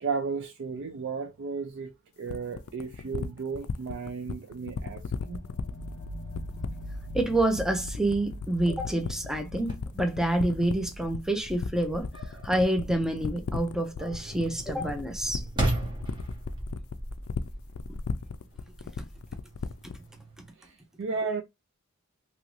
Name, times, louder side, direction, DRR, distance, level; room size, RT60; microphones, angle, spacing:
voice 1, 0.0-5.4 9.4-9.6 20.6-21.4, right 5 dB, 60° right, 0.4 m, -34 dB
sound 1, 2.3-20.0, left 6 dB, 90° left, 0.4 m, -35 dB
sound 2, 4.8-14.6, equal, 30° left, 0.9 m, -43 dB
voice 2, 7.1-12.1 12.4-15.4, right 1 dB, 5° right, 0.5 m, -27 dB
sound 3, 9.6-20.5, right 1 dB, 20° right, 1.1 m, -37 dB
3.0 x 2.5 x 3.0 m
head